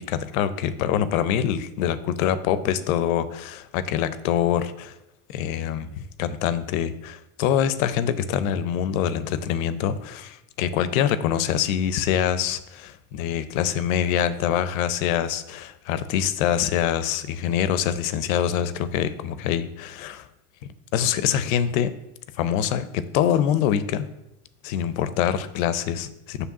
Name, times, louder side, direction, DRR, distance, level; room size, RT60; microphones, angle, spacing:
voice 1, 0.0-4.9 5.3-20.3 20.9-21.9 22.4-24.1 24.6-26.5, left 9 dB, 75° left, 13 dB, 0.7 m, -25 dB
7.2 x 3.3 x 6.0 m, 0.87 s
supercardioid pair, 115°, 42 cm